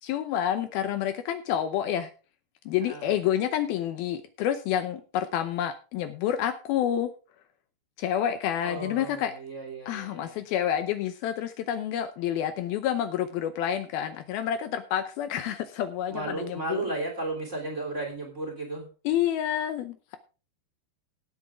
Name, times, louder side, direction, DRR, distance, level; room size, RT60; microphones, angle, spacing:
voice 1, 0.0-2.1 2.7-7.1 8.0-9.3 9.9-16.8 19.1-20.2, left 10 dB, 75° left, 9 dB, 2.5 m, -28 dB
voice 2, 2.8-3.1 8.6-10.4 16.1-18.9, right 2 dB, 20° right, 1 dB, 2.8 m, -34 dB
17.5 x 8.0 x 3.6 m, 0.35 s
omnidirectional pair, 4.7 m